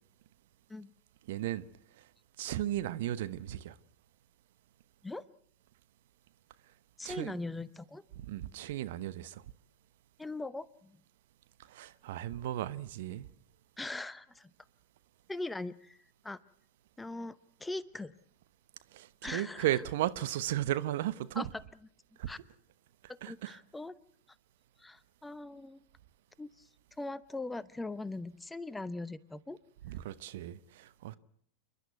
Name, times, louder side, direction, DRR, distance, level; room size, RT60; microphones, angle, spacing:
voice 1, 1.3-1.6 2.0-2.1 2.4-3.8 7.0-7.4 8.2-9.4 11.7-13.3 18.9-21.5 22.2-22.3 23.2-23.6 29.8-31.2, right 13 dB, 60° right, 1.0 m, -35 dB
voice 2, 7.0-8.0 10.2-10.9 13.8-14.5 15.3-16.0 16.2-16.4 17.0-18.1 19.2-19.8 21.4-21.5 22.3-22.4 23.1-24.0 24.8-25.8 26.4-26.5 27.0-29.6, left 2 dB, 10° left, 0.8 m, -40 dB
28.0 x 11.0 x 9.5 m
hypercardioid pair, 95°, 0 cm